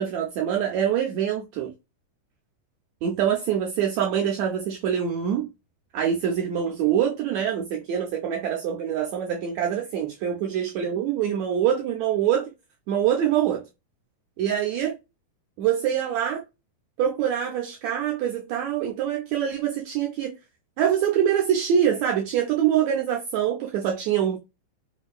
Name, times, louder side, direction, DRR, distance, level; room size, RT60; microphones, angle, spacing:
voice 1, 0.0-1.7 3.0-5.5 5.9-12.5 12.9-13.6 14.4-15.0 15.6-16.4 17.0-20.4 20.8-24.4, right 9 dB, 90° right, 1.6 m, -24 dB
5.2 x 2.4 x 2.2 m
omnidirectional pair, 3.7 m